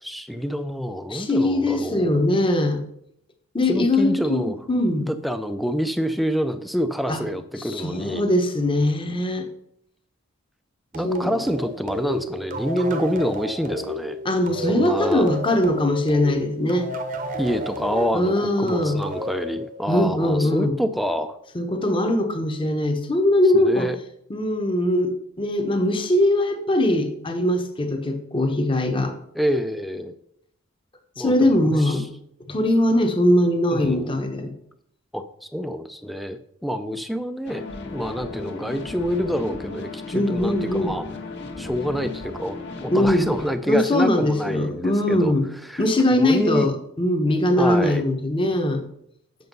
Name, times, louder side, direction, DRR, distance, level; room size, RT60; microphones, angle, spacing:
voice 1, 0.0-2.3 3.7-4.6 5.0-8.3 10.9-14.2 14.7-15.3 17.4-21.4 23.5-24.0 29.3-30.2 31.2-32.1 33.7-34.2 35.1-35.3 35.5-37.6 37.9-41.0 41.6-45.4 45.6-45.8 46.1-46.7 47.6-48.0, equal, ahead, 9 dB, 0.5 m, -27 dB
voice 2, 1.1-2.8 3.5-5.1 7.1-7.2 7.6-9.5 11.0-11.3 14.2-16.9 18.1-19.0 19.9-20.8 21.5-23.9 24.3-29.1 31.2-32.0 32.5-34.5 40.1-40.9 42.9-43.3 43.7-45.5 45.8-48.8, left 1 dB, 25° left, 5 dB, 1.1 m, -21 dB
sound 1, 10.9-20.2, equal, 40° right, 0.9 m, -33 dB
sound 2, 37.5-43.6, left 3 dB, 55° left, 1.4 m, -36 dB
8.0 x 6.4 x 5.3 m, 0.72 s
head